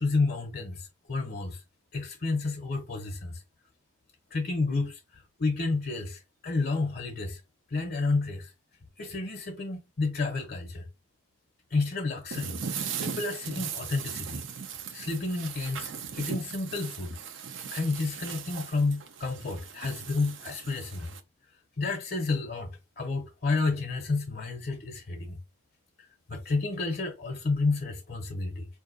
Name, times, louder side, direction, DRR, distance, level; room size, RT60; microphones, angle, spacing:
voice 1, 0.0-1.6 1.9-3.4 4.3-7.4 7.7-8.5 9.0-10.9 11.7-14.4 14.9-17.2 17.7-21.1 21.8-25.4 26.0-28.7, left 3 dB, 50° left, 0.6 m, -31 dB
sound 1, 12.3-21.2, right 7 dB, 65° right, 0.5 m, -38 dB
4.5 x 2.6 x 2.5 m
head